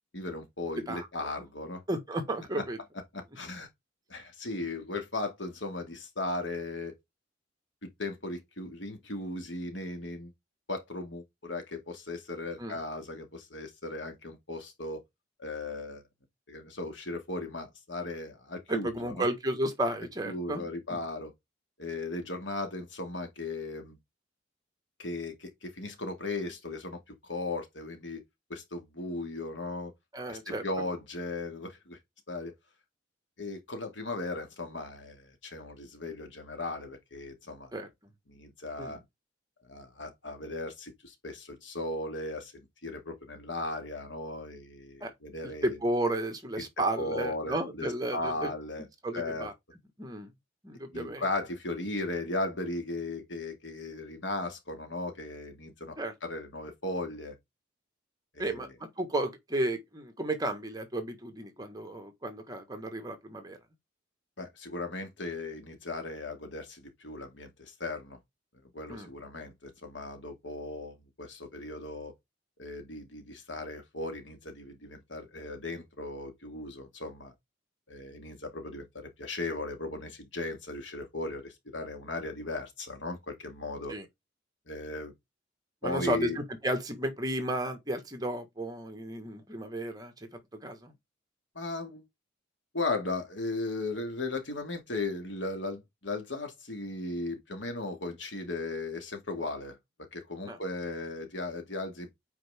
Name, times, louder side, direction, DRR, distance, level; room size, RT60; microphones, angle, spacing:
voice 1, 0.1-1.8 3.1-3.7 4.1-7.0 8.0-10.3 10.7-15.0 15.4-16.0 16.5-19.3 20.2-21.3 21.8-24.0 25.0-28.2 28.5-29.9 30.3-32.0 32.3-32.5 33.4-37.7 38.3-39.0 39.7-45.8 47.0-48.9 49.1-49.5 50.9-55.9 56.2-57.4 58.3-58.7 64.4-68.2 68.7-72.1 72.6-77.3 77.9-83.9 84.7-85.1 85.8-86.4 91.6-92.0 92.7-99.8 100.1-102.1, left 2 dB, 80° left, 2.3 m, -37 dB
voice 2, 1.9-2.8 12.6-12.8 18.7-21.0 30.1-30.6 37.7-37.9 38.8-39.0 45.0-45.1 45.4-48.5 49.0-49.5 50.0-50.3 50.6-51.2 56.0-56.1 58.4-63.6 68.9-69.1 83.9-84.0 85.8-90.1 90.6-90.9 100.4-100.6, right 1 dB, 20° right, 1.7 m, -33 dB
9.1 x 4.7 x 3.7 m
head